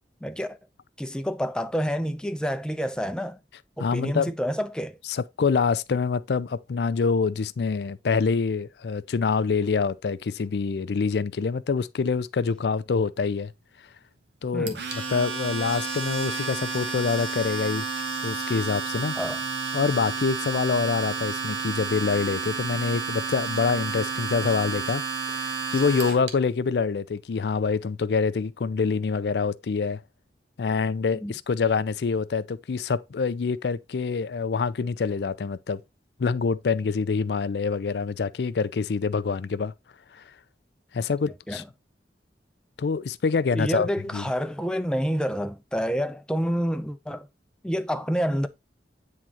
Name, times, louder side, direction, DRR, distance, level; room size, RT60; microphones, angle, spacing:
voice 1, 0.2-0.6 1.0-3.4 3.8-5.0 14.5-14.8 19.2-19.4 31.2-31.3 41.5-41.6 43.5-47.3 47.6-48.5, equal, 5° left, 0.5 m, -28 dB
voice 2, 3.8-4.3 5.1-13.5 14.4-14.8 15.1-17.9 18.2-19.2 19.7-25.0 25.3-30.0 30.6-35.8 36.2-39.7 40.1-40.2 40.9-41.6 42.8-44.3, left 5 dB, 70° left, 0.4 m, -26 dB
Domestic sounds home sounds, 14.7-26.3, right 5 dB, 80° right, 1.3 m, -31 dB
9.0 x 3.7 x 2.8 m
head